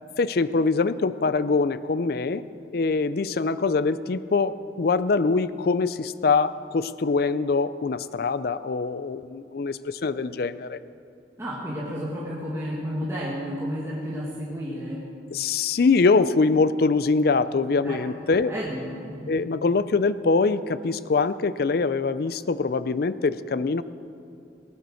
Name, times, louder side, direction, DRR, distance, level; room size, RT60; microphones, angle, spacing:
voice 1, 0.2-2.4 2.7-10.8 15.3-18.5 19.3-23.8, left 4 dB, 50° left, 14 dB, 0.4 m, -23 dB
voice 2, 11.4-15.0 17.8-18.1 18.4-19.4, equal, 15° right, -7 dB, 1.8 m, -32 dB
18.0 x 9.6 x 6.4 m, 2.6 s
head